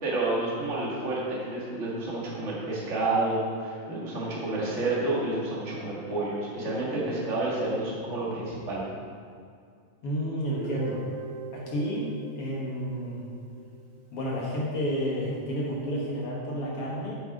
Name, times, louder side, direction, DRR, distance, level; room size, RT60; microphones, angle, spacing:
voice 1, 0.0-8.8, right 2 dB, 25° right, -6 dB, 1.9 m, -29 dB
voice 2, 10.0-11.0 11.5-12.1 12.4-13.3 14.1-17.2, equal, 55° left, -4 dB, 1.7 m, -31 dB
Guitar, 10.5-14.3, right 3 dB, 60° right, 2.1 m, -41 dB
8.1 x 7.4 x 5.0 m, 2.2 s
omnidirectional pair, 4.1 m